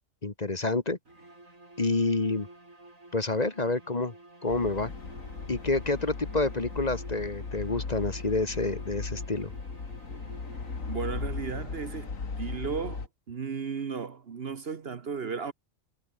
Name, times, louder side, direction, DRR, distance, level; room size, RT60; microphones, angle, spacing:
voice 1, 0.2-1.0 1.8-2.5 3.1-4.1 4.4-4.9 5.5-9.5, left 3 dB, 30° left, 1.6 m, -28 dB
sound 1, 1.0-11.3, right 2 dB, 85° right, 6.5 m, -52 dB
sound 2, 4.5-13.1, left 4 dB, 85° left, 2.9 m, -37 dB
voice 2, 10.9-15.5, right 6 dB, 50° right, 1.3 m, -35 dB
omnidirectional pair, 1.4 m